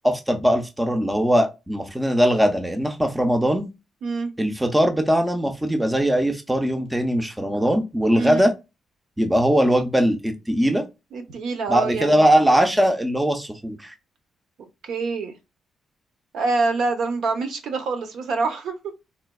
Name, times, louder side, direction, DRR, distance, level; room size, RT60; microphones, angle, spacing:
voice 1, 0.0-3.7 4.4-8.5 9.2-10.8 11.7-13.9, equal, 5° right, 0.4 m, -20 dB
voice 2, 4.0-4.3 8.1-8.5 11.1-12.3 14.8-15.3 16.3-18.8, right 3 dB, 65° right, 0.7 m, -25 dB
4.0 x 2.2 x 2.2 m
cardioid pair, 165°, 0 cm